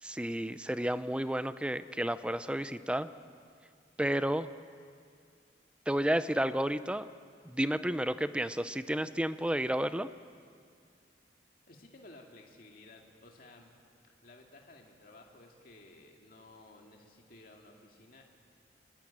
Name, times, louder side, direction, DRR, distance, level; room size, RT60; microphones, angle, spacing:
voice 1, 0.0-3.1 4.0-4.5 5.9-7.1 7.4-10.1, right 1 dB, 5° right, 13 dB, 0.5 m, -31 dB
voice 2, 11.7-13.7 14.1-18.3, left 2 dB, 55° left, 1 dB, 2.3 m, -55 dB
23.0 x 20.0 x 8.8 m, 2.3 s
head